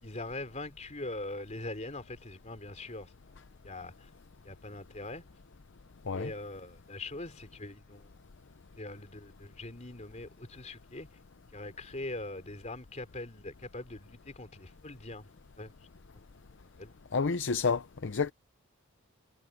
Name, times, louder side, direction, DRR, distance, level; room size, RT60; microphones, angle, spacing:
voice 1, 0.0-4.1 4.4-5.2 6.1-8.1 8.8-11.1 11.5-15.3 15.6-15.7 16.1-16.3 16.8-16.9, left 2 dB, 30° left, 3.5 m, -42 dB
voice 2, 17.1-18.3, left 5 dB, 55° left, 0.6 m, -29 dB
head